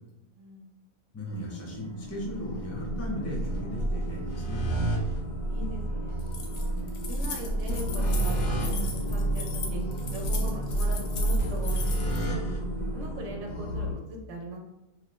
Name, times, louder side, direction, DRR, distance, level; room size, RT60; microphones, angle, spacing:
voice 1, 0.4-0.7 5.5-6.3 6.7-9.8 10.1-12.4 12.9-14.6, equal, 65° right, 0 dB, 1.0 m, -41 dB
voice 2, 1.1-4.6, left 1 dB, 20° left, -2 dB, 0.4 m, -36 dB
sound 1, 1.3-13.9, right 1 dB, 85° left, 1.5 m, -30 dB
Keys jangling, 6.2-12.3, left 5 dB, 65° left, 0.9 m, -39 dB
3.1 x 2.1 x 3.1 m, 0.90 s
omnidirectional pair, 1.5 m